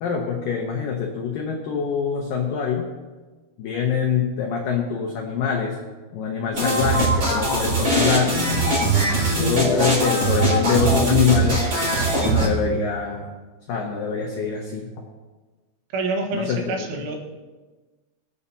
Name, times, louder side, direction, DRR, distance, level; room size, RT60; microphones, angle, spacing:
voice 1, 0.0-2.9 3.6-5.8 6.1-8.4 9.3-11.7 12.2-13.4 13.7-14.9 16.3-17.1, left 6 dB, 80° left, 1 dB, 2.0 m, -24 dB
sound 1, 6.5-12.5, right 1 dB, 30° right, 5.6 m, -21 dB
voice 2, 15.9-17.2, right 2 dB, 80° right, 1 dB, 4.0 m, -27 dB
25.0 x 8.6 x 2.9 m, 1.3 s
omnidirectional pair, 5.5 m